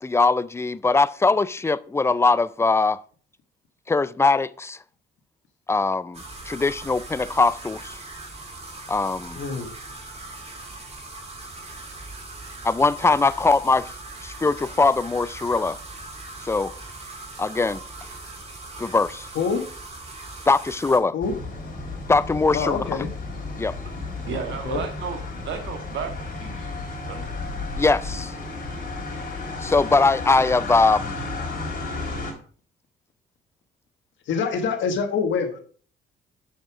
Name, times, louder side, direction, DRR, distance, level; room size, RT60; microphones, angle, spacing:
voice 1, 0.0-3.0 3.9-4.8 5.7-8.0 8.9-9.4 12.6-13.9 14.2-15.8 16.4-16.7 17.4-17.8 18.8-19.3 20.5-21.1 22.1-22.8 23.6-23.7 27.8-28.3 29.6-31.1, left 3 dB, 15° left, 0.4 m, -21 dB
sound 1, 6.1-21.0, right 2 dB, 30° right, 2.2 m, -40 dB
voice 2, 9.3-9.7 19.3-19.6 21.1-21.4 22.5-23.1 24.6-24.8 34.3-35.6, left 5 dB, 70° left, 1.4 m, -25 dB
sound 2, 21.2-32.3, left 3 dB, 50° left, 3.7 m, -33 dB
voice 3, 24.3-27.3, right 6 dB, 70° right, 1.9 m, -34 dB
6.5 x 6.5 x 4.8 m
cardioid pair, 90°, 20 cm